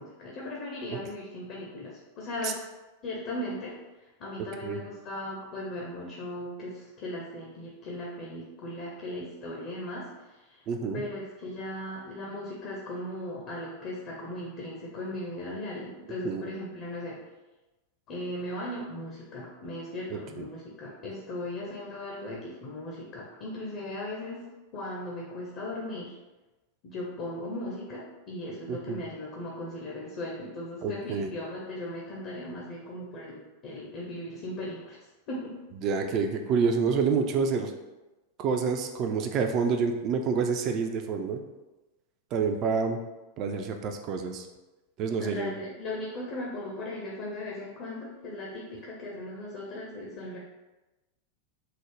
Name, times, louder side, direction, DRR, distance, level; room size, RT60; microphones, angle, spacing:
voice 1, 0.0-2.6 3.0-3.8 4.2-10.6 10.9-17.2 18.1-24.4 24.7-26.2 26.8-35.0 35.3-35.6 45.2-50.4, left 1 dB, 40° left, -3 dB, 0.6 m, -37 dB
voice 2, 10.7-11.0 16.2-16.5 20.1-20.4 28.7-29.0 30.8-31.3 35.8-37.7 38.4-41.4 42.3-43.0 43.4-44.5 45.0-45.6, right 5 dB, 35° right, 5 dB, 0.3 m, -28 dB
3.7 x 2.0 x 3.1 m, 1.1 s
figure-of-eight pair, 90°, 0 cm